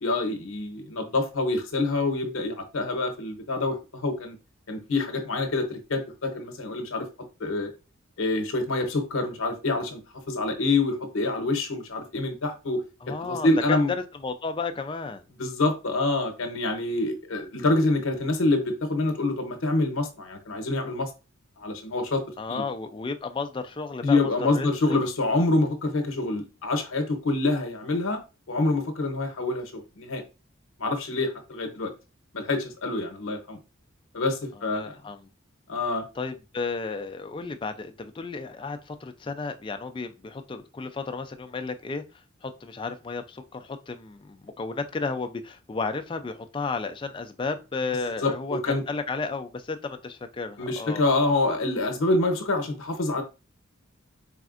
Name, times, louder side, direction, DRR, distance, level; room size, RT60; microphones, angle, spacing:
voice 1, 0.0-4.4 4.7-7.1 7.4-7.7 8.2-10.0 10.3-12.8 13.1-13.9 15.4-21.1 21.6-22.2 22.5-22.6 24.0-28.2 28.5-30.2 30.8-31.9 32.3-33.6 34.1-35.0 35.7-36.0 48.2-48.8 50.6-53.2, left 2 dB, 85° left, 0.8 m, -26 dB
voice 2, 13.0-13.8 14.2-15.2 22.4-25.0 34.7-35.3 36.2-42.0 42.4-51.0, left 4 dB, 25° left, 0.3 m, -33 dB
4.2 x 3.5 x 2.4 m
head